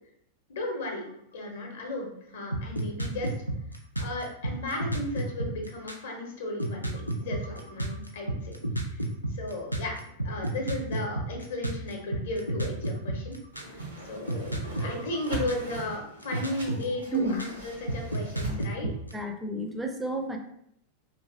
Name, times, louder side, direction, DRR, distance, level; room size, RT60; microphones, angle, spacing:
voice 1, 0.5-1.0 1.3-3.3 4.0-8.6 8.9-9.0 9.3-13.3 13.7-13.8 14.1-18.9, left 1 dB, 60° left, 1 dB, 0.7 m, -35 dB
sound 1, 2.5-6.1 6.6-13.8 14.3-16.0 16.2-17.6 17.9-19.1, right 1 dB, 90° left, 0.3 m, -31 dB
Whoosh swoosh swish, 13.5-18.5, right 1 dB, 75° right, 0.6 m, -39 dB
voice 2, 18.8-20.4, right 2 dB, 10° right, 4 dB, 0.4 m, -31 dB
2.9 x 2.5 x 2.6 m, 0.74 s
figure-of-eight pair, 90°, 0 cm